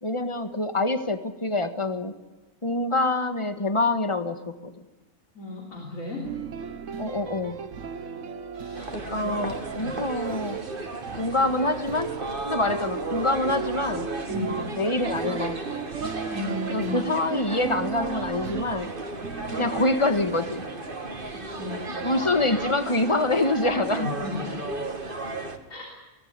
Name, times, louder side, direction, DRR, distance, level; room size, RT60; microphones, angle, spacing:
voice 1, 0.0-2.1 2.6-4.7 7.0-7.6 8.9-10.6 11.2-12.1 12.4-14.1 14.8-15.6 16.7-18.9 19.6-20.7 22.0-24.1, left 2 dB, 20° left, 9 dB, 1.7 m, -26 dB
voice 2, 5.4-6.2 8.5-8.9 9.2-9.3 9.8-9.9 14.3-14.6 16.3-17.0 21.3-21.9 24.0-24.6 25.7-25.9, left 2 dB, 80° left, -1 dB, 4.0 m, -34 dB
sound 1, 6.2-19.8, right 7 dB, 70° right, 1.3 m, -36 dB
sound 2, 8.7-25.6, right 2 dB, 40° right, 2.3 m, -34 dB
22.5 x 18.0 x 9.7 m, 1.1 s
omnidirectional pair, 1.4 m